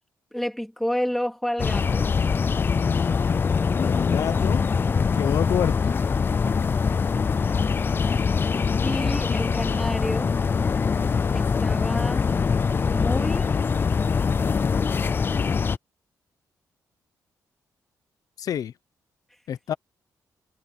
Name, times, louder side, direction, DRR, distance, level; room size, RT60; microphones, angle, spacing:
voice 1, 0.3-2.1 8.8-10.4 11.3-12.3 12.9-13.6, equal, 5° left, 3.0 m, -30 dB
sound 1, 1.6-15.8, left 5 dB, 35° left, 0.6 m, -23 dB
voice 2, 3.7-4.6 5.1-6.0 18.4-18.7 19.5-19.7, left 9 dB, 65° left, 0.7 m, -28 dB
cardioid pair, 125°, 7 cm